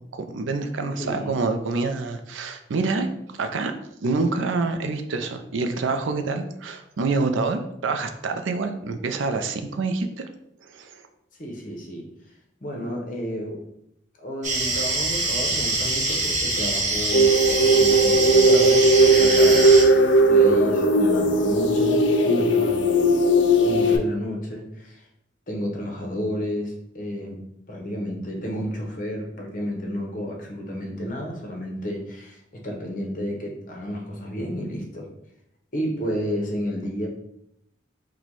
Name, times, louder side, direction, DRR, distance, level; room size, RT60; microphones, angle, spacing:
voice 1, 0.0-3.1 3.4-3.7 4.0-10.3 10.6-11.0, right 3 dB, 80° right, 7 dB, 0.4 m, -27 dB
voice 2, 1.0-1.4 11.4-12.0 12.6-13.6 14.2-22.8 23.6-25.0 25.5-27.4 27.7-35.1 35.7-37.1, equal, 45° left, 1 dB, 0.8 m, -31 dB
sound 1, 14.4-19.8, right 2 dB, 40° right, 0.8 m, -25 dB
sound 2, 17.1-24.0, right 1 dB, 75° left, 0.5 m, -17 dB
4.1 x 2.2 x 4.5 m, 0.78 s
head